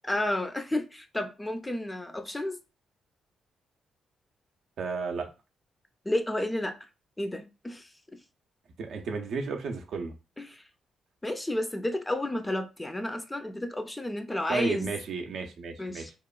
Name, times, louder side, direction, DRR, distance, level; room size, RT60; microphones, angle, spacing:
voice 1, 0.1-2.6 6.0-6.7 7.2-7.9 10.4-10.6 11.2-14.9 15.8-16.1, left 1 dB, 15° left, 7 dB, 0.4 m, -31 dB
voice 2, 4.8-5.3 8.8-10.1 14.5-16.1, right 5 dB, 70° right, 4 dB, 0.5 m, -33 dB
2.9 x 2.1 x 2.3 m, 0.29 s
cardioid pair, 80°, 0 cm